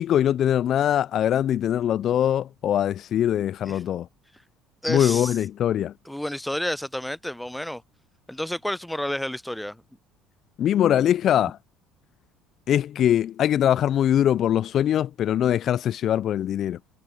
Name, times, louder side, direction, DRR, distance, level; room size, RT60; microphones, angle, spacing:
voice 1, 0.0-4.1 4.9-5.9 10.6-11.6 12.7-16.8, left 10 dB, 55° left, 0.3 m, -22 dB
voice 2, 4.8-5.4 6.1-7.8 8.3-9.8, left 1 dB, 5° left, 0.7 m, -30 dB
hypercardioid pair, 70°, 0 cm